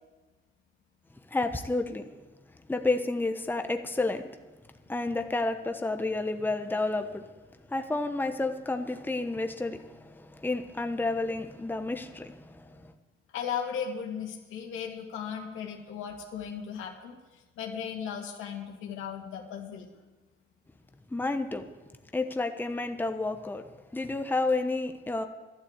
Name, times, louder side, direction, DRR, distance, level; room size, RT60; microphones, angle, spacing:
voice 1, 1.3-2.1 2.7-4.3 4.9-7.3 7.7-12.9 21.1-21.7 22.1-25.3, left 2 dB, 10° left, 6 dB, 1.0 m, -30 dB
voice 2, 13.3-19.9, left 7 dB, 90° left, 2 dB, 2.4 m, -36 dB
12.0 x 11.5 x 8.2 m, 1.2 s
cardioid pair, 90°, 20 cm